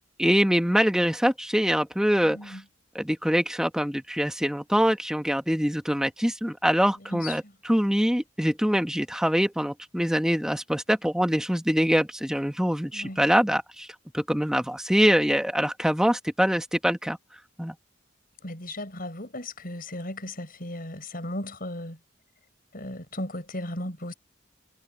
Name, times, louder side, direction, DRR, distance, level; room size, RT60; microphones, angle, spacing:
voice 1, 0.2-2.6 2.9-13.9 14.1-17.2 17.6-17.7, equal, 5° right, 1.3 m, -24 dB
voice 2, 2.2-2.6 7.1-7.3 12.9-13.2 18.4-22.0 22.7-24.1, left 1 dB, 45° left, 6.5 m, -36 dB
head